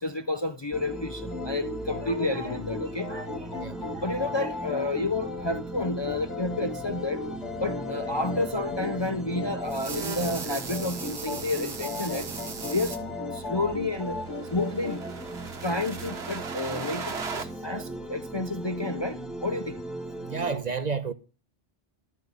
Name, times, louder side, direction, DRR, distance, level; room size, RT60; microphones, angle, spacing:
voice 1, 0.0-7.2 7.6-12.3 12.7-13.0 13.3-14.2 14.5-17.2 17.6-19.8, left 2 dB, 30° left, 0.5 m, -30 dB
sound 1, 0.7-20.6, right 1 dB, ahead, 1.7 m, -39 dB
sound 2, 1.2-15.1, left 4 dB, 90° left, 1.9 m, -37 dB
sound 3, 9.7-13.0 14.1-17.4, right 5 dB, 65° right, 1.5 m, -37 dB
voice 2, 20.3-21.1, right 5 dB, 45° right, 0.7 m, -30 dB
12.0 x 6.0 x 9.2 m
omnidirectional pair, 1.2 m